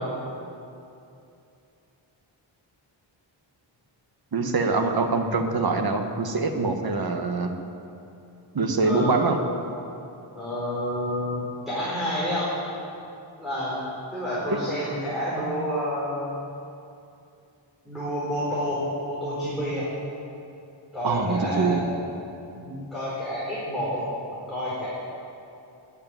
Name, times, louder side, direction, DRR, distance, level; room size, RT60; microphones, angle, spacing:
voice 1, 4.3-7.5 8.5-9.4 14.5-14.6 21.0-21.9, right 3 dB, 50° right, 5 dB, 1.4 m, -24 dB
voice 2, 8.8-9.4 10.3-12.5 13.4-13.8 14.1-16.4 17.8-19.9 20.9-21.9 22.6-24.1 24.5-24.9, equal, ahead, -10 dB, 4.4 m, -29 dB
13.0 x 10.0 x 9.4 m, 2.7 s
wide cardioid pair, 170°, 47 cm